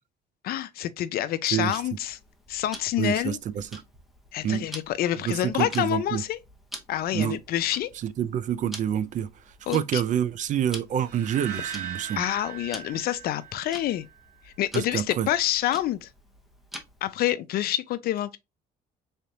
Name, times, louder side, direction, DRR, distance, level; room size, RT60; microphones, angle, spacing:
voice 1, 0.4-2.2 2.5-3.4 4.3-6.4 6.9-7.9 9.7-10.0 12.2-14.1 14.5-16.1 17.0-18.4, left 12 dB, 65° left, 0.5 m, -27 dB
Tick-tock, 1.7-17.1, equal, ahead, 0.9 m, -47 dB
voice 2, 3.0-3.8 4.4-4.6 5.3-6.2 7.1-7.4 8.0-9.3 9.7-12.2 14.7-15.3, right 9 dB, 50° right, 0.4 m, -27 dB
sound 1, 11.0-14.2, right 9 dB, 80° right, 1.0 m, -39 dB
3.9 x 3.3 x 2.7 m
cardioid pair, 110°, 17 cm